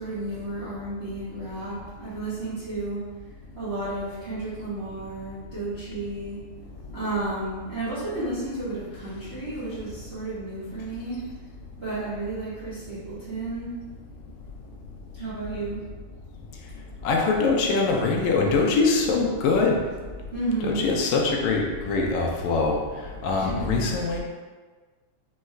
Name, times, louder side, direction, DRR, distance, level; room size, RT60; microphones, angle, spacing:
voice 1, 0.0-3.0 3.5-6.4 6.9-11.2 11.7-13.7 15.1-15.8 20.3-20.8 23.4-24.0, right 2 dB, 45° right, -12 dB, 0.7 m, -32 dB
voice 2, 17.0-19.8 20.6-22.8 23.2-24.2, left 4 dB, 80° left, 0 dB, 1.8 m, -23 dB
5.4 x 2.3 x 3.1 m, 1.4 s
omnidirectional pair, 3.4 m